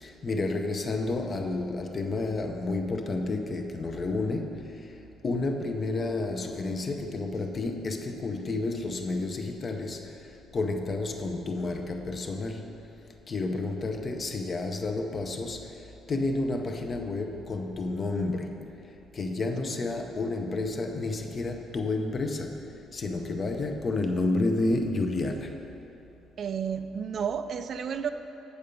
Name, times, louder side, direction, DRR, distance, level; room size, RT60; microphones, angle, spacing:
voice 1, 0.0-4.9 5.2-10.1 10.5-12.7 13.3-15.7 16.1-18.5 19.1-22.6 22.9-25.5, left 2 dB, 30° left, 4 dB, 0.6 m, -30 dB
voice 2, 26.4-28.1, right 7 dB, 45° right, 9 dB, 0.3 m, -31 dB
8.2 x 6.7 x 5.2 m, 2.9 s
cardioid pair, 140°, 0 cm